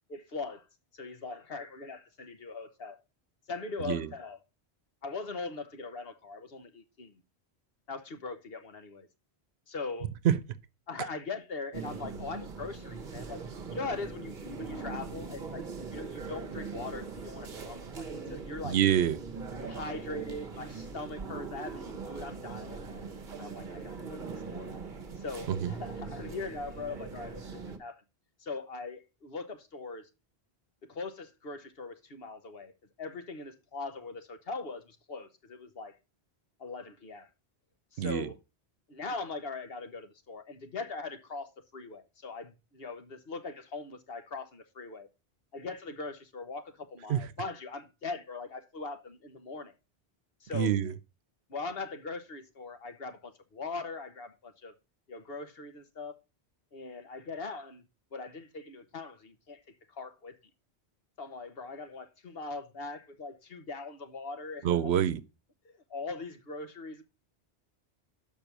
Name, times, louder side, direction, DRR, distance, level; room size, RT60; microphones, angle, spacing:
voice 1, 0.1-0.6 0.9-3.0 3.5-4.4 5.0-7.2 7.9-9.1 9.7-10.1 10.9-13.4 13.7-18.8 19.6-22.8 23.4-24.7 25.2-28.0 28.4-30.1 30.9-32.7 33.0-35.9 36.6-37.3 37.9-38.3 38.9-45.1 45.5-49.7 50.4-50.7 51.5-54.7 55.1-56.1 56.7-57.8 58.1-59.6 59.9-60.3 61.2-64.9 65.6-67.0, left 3 dB, 65° left, 1.4 m, -41 dB
sound 1, 11.7-27.8, right 4 dB, 50° right, 1.1 m, -41 dB
voice 2, 18.6-19.2 25.5-25.7 38.0-38.3 47.1-47.2 50.5-50.9 64.6-65.2, right 10 dB, 85° right, 1.0 m, -26 dB
6.8 x 5.3 x 5.9 m
omnidirectional pair, 1.1 m